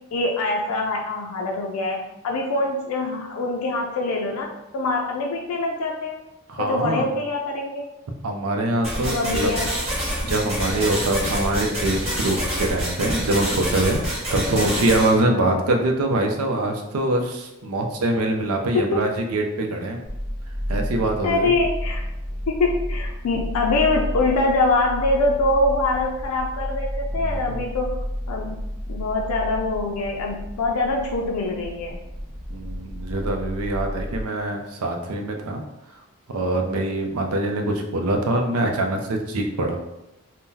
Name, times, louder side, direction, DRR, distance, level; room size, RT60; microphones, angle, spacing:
voice 1, 0.1-6.2 6.6-7.9 9.0-9.8 14.4-14.9 15.3-15.6 18.7-19.1 21.2-22.0 22.5-28.6 28.9-32.0, left 2 dB, 85° left, 0 dB, 0.4 m, -24 dB
voice 2, 6.5-7.1 8.2-9.5 10.2-20.0 20.7-21.5 27.1-27.6 32.5-35.6 36.3-39.8, right 2 dB, 80° right, 3 dB, 0.5 m, -24 dB
sound 1, 8.8-15.1, equal, 30° right, 1.0 m, -27 dB
sound 2, 20.0-34.2, equal, 60° right, 1.1 m, -31 dB
3.7 x 2.1 x 2.7 m, 0.92 s
head